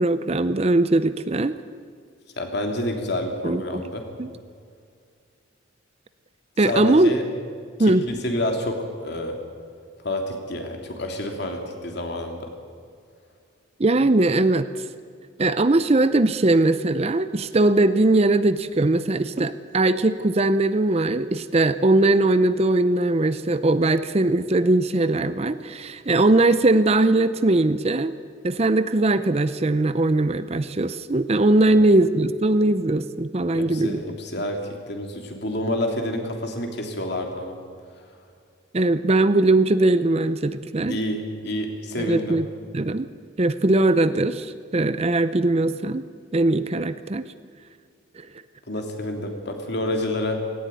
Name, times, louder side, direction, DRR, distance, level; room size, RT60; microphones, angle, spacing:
voice 1, 0.0-1.6 3.4-3.8 4.2-4.3 6.6-7.1 7.8-8.0 13.8-14.7 15.4-28.1 28.4-34.0 38.7-41.0 42.0-42.4 42.7-43.1 43.4-46.0 46.3-47.2 48.2-48.3, right 2 dB, 30° right, 13 dB, 0.5 m, -20 dB
voice 2, 2.4-4.0 6.7-7.2 7.8-9.4 10.0-12.5 31.7-31.8 33.5-34.6 34.9-37.6 40.9-42.4 48.7-50.4, left 1 dB, 55° left, 3 dB, 3.1 m, -28 dB
18.0 x 17.5 x 9.3 m, 2.2 s
head